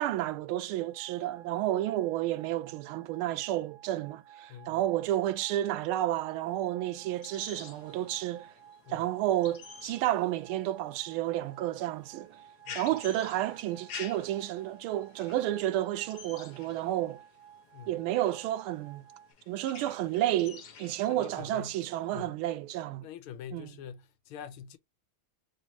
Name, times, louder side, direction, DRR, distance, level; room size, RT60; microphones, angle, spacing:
voice 1, 0.0-8.5 8.9-12.4 12.7-17.2 17.9-19.0 19.5-23.1 23.5-23.7, right 13 dB, 80° right, 1.4 m, -31 dB
sound 1, 0.8-19.3, right 10 dB, 65° right, 1.1 m, -55 dB
voice 2, 4.5-4.8 8.9-9.1 12.7-12.8 17.7-18.0 21.1-21.8 22.1-22.4 23.0-24.8, left 8 dB, 90° left, 1.5 m, -45 dB
sound 2, 6.9-22.2, left 6 dB, 60° left, 1.3 m, -50 dB
3.5 x 3.1 x 2.7 m
omnidirectional pair, 2.3 m